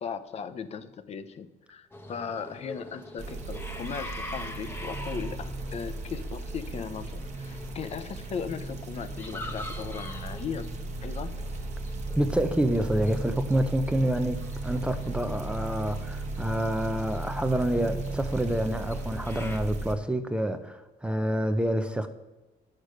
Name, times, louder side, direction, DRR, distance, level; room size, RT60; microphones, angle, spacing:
voice 1, 0.0-10.7 11.0-11.3, left 6 dB, 40° left, 11 dB, 0.6 m, -37 dB
sound 1, 1.9-19.6, left 1 dB, 15° left, 0.9 m, -45 dB
sound 2, 3.2-20.0, right 2 dB, 45° right, 1.1 m, -36 dB
voice 2, 12.2-22.1, right 1 dB, 5° right, 8 dB, 0.5 m, -28 dB
10.5 x 6.6 x 6.3 m, 1.1 s
cardioid pair, 155°, 16 cm